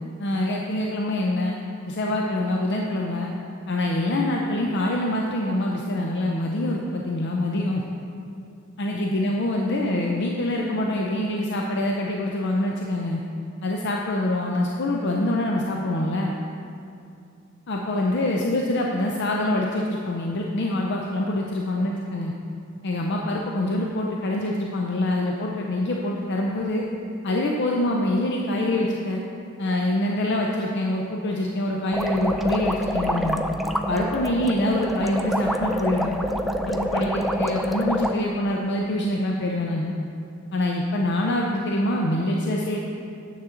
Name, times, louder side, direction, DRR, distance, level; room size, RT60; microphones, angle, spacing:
voice 1, 0.2-1.6 1.9-3.3 3.7-7.8 8.8-13.2 13.6-16.3 17.7-22.3 22.8-26.9 27.2-29.2 29.6-33.4 33.9-36.1 36.7-39.9 40.5-42.8, left 1 dB, 60° left, 0 dB, 0.6 m, -25 dB
sound 1, 31.9-38.1, equal, ahead, 0.3 m, -26 dB
9.4 x 7.1 x 3.8 m, 2.5 s
head